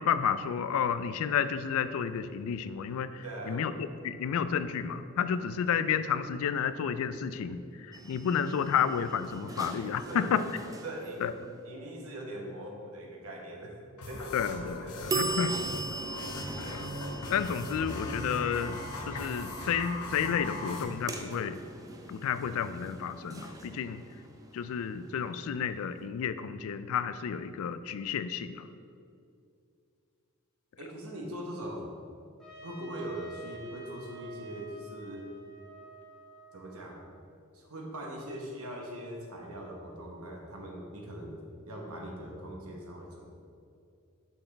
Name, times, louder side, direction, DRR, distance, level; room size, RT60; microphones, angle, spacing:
voice 1, 0.0-3.7 4.0-10.5 11.2-11.3 14.3-15.5 16.6-16.9 17.3-18.8 19.1-21.6 22.1-24.0 24.5-28.6, left 7 dB, 65° left, 12 dB, 0.3 m, -31 dB
voice 2, 3.2-3.7 10.0-10.3 10.8-11.3 11.6-13.8 14.1-14.4 14.8-15.2 30.8-31.9 32.6-35.3 36.5-37.0 37.5-41.4 41.6-43.3, right 1 dB, 70° right, 0 dB, 1.1 m, -41 dB
sound 1, 7.9-11.7 15.1-25.8, right 2 dB, 15° right, 0.4 m, -40 dB
sound 2, 14.0-20.8, left 2 dB, 90° left, 0.8 m, -39 dB
Trumpet, 32.4-37.2, right 3 dB, 5° left, 1.5 m, -49 dB
6.3 x 5.8 x 3.3 m, 2.4 s
head